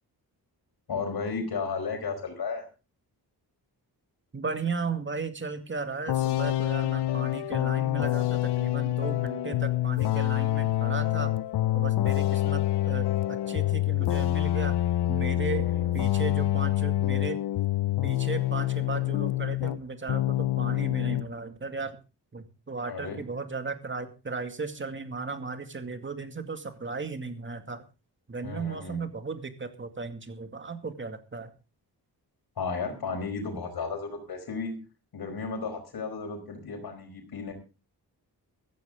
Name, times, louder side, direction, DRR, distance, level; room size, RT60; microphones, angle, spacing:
voice 1, 0.9-2.7 15.6-15.9 22.9-23.2 28.4-29.0 32.6-34.7 35.1-37.5, left 4 dB, 70° left, 3 dB, 4.8 m, -34 dB
voice 2, 4.3-11.4 11.7-14.8 15.1-17.4 18.0-22.0 22.3-27.8 28.3-31.5, right 4 dB, 30° right, 7 dB, 2.2 m, -35 dB
sound 1, 6.1-19.8 20.1-21.3, left 14 dB, 85° left, 0.7 m, -26 dB
15.0 x 15.0 x 3.7 m, 0.32 s
wide cardioid pair, 115°, 39 cm